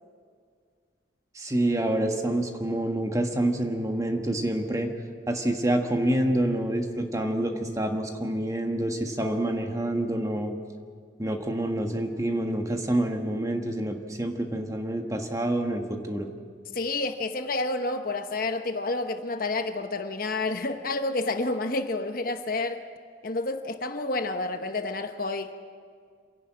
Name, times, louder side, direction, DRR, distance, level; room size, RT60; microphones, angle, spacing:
voice 1, 1.3-4.9 5.3-10.6 11.2-16.3, right 1 dB, 20° right, 4 dB, 1.4 m, -27 dB
voice 2, 16.7-22.8 23.2-25.6, left 2 dB, 50° left, 7 dB, 1.0 m, -29 dB
27.0 x 11.0 x 8.6 m, 2.1 s
head